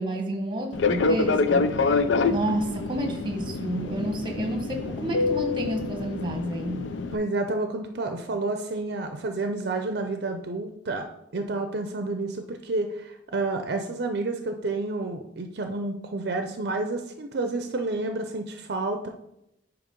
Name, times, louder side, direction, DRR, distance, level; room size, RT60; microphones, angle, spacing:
voice 1, 0.0-1.7 2.3-6.9, right 1 dB, 25° right, 4 dB, 1.0 m, -30 dB
Fixed-wing aircraft airplane, 0.7-7.2, left 3 dB, 85° left, 0.5 m, -26 dB
voice 2, 7.1-11.1 11.3-19.1, right 2 dB, 60° right, 5 dB, 0.5 m, -30 dB
8.6 x 3.0 x 5.2 m, 0.82 s
head